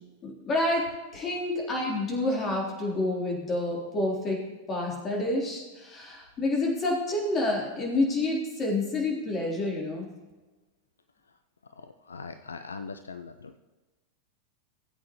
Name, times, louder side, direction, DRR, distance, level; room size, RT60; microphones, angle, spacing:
voice 1, 0.2-4.4 4.7-10.1, left 2 dB, 25° left, -2 dB, 3.5 m, -28 dB
voice 2, 11.7-13.6, left 4 dB, 75° left, 10 dB, 0.5 m, -41 dB
19.0 x 8.2 x 3.1 m, 1.2 s
figure-of-eight pair, 90°, 0 cm